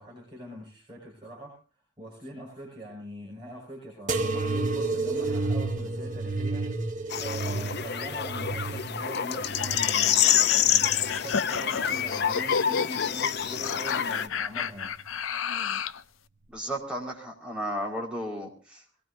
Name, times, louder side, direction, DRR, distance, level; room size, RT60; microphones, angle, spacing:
voice 1, 0.0-1.6 2.0-15.0, equal, 25° right, -5 dB, 6.9 m, -42 dB
sound 1, 4.1-11.3 11.8-12.6 13.4-13.9 14.9-15.0, right 3 dB, 40° right, 1.5 m, -32 dB
sound 2, 7.1-14.3, left 9 dB, 55° left, 0.8 m, -27 dB
sound 3, 9.5-16.0, left 6 dB, 80° left, 0.7 m, -32 dB
voice 2, 16.5-18.8, equal, 5° right, -2 dB, 4.9 m, -34 dB
23.5 x 19.5 x 2.7 m, 0.35 s
head